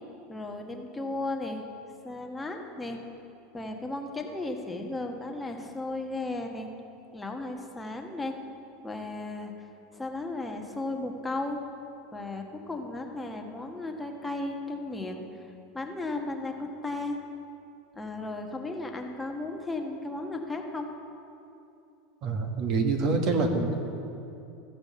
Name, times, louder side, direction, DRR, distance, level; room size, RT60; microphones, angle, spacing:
voice 1, 0.3-1.7 2.0-3.0 3.5-6.7 7.1-8.3 8.8-9.5 9.9-11.6 12.1-15.2 15.7-17.2 17.9-20.9, left 2 dB, 10° left, 2 dB, 1.2 m, -35 dB
voice 2, 22.2-23.8, right 3 dB, 50° right, 5 dB, 1.4 m, -26 dB
14.5 x 5.2 x 7.3 m, 2.7 s
supercardioid pair, 110°, 0 cm